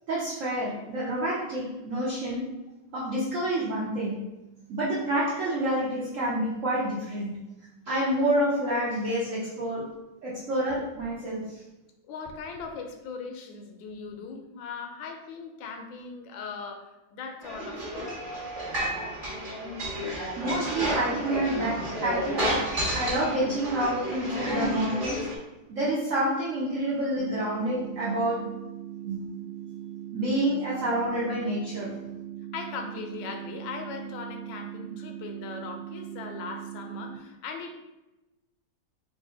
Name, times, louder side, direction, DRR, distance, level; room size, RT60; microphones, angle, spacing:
voice 1, 0.1-2.5 2.9-4.2 4.7-7.3 7.9-9.9 10.2-11.6 20.4-22.4 22.9-25.2 25.7-28.4 29.0-29.2 30.1-31.9, right 1 dB, 65° right, -7 dB, 0.8 m, -28 dB
voice 2, 12.1-18.1 32.5-37.8, left 5 dB, 80° left, 4 dB, 1.3 m, -39 dB
sound 1, 17.4-25.4, equal, 35° right, 0.9 m, -31 dB
sound 2, 27.2-37.2, right 11 dB, 85° right, 1.4 m, -40 dB
3.3 x 2.5 x 3.7 m, 1.0 s
omnidirectional pair, 2.1 m